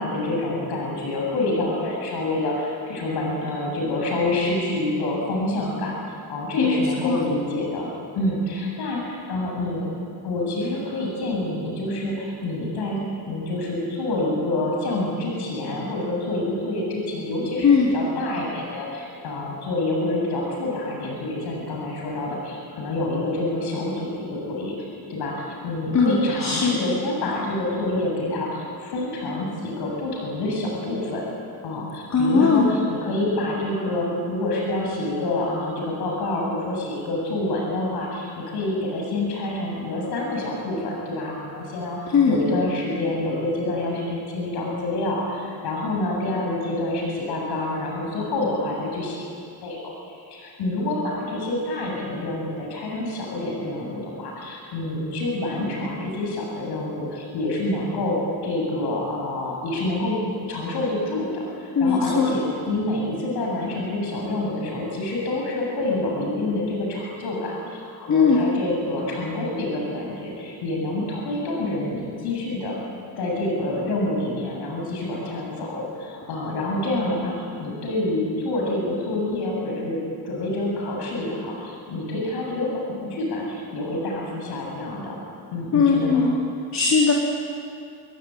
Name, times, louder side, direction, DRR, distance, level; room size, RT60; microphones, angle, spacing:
voice 1, 0.0-7.9 8.1-9.9 10.2-24.7 25.1-31.2 31.6-49.3 49.6-60.2 60.5-72.7 73.2-85.2 85.5-86.3, left 2 dB, 85° left, -1 dB, 7.9 m, -27 dB
voice 2, 6.6-7.2 17.6-17.9 25.9-26.8 32.1-32.7 42.1-42.4 61.8-62.3 68.1-68.4 85.7-86.3 86.7-87.1, left 5 dB, 45° left, -2 dB, 4.0 m, -19 dB
27.5 x 23.0 x 9.3 m, 2.5 s
cardioid pair, 130°, 38 cm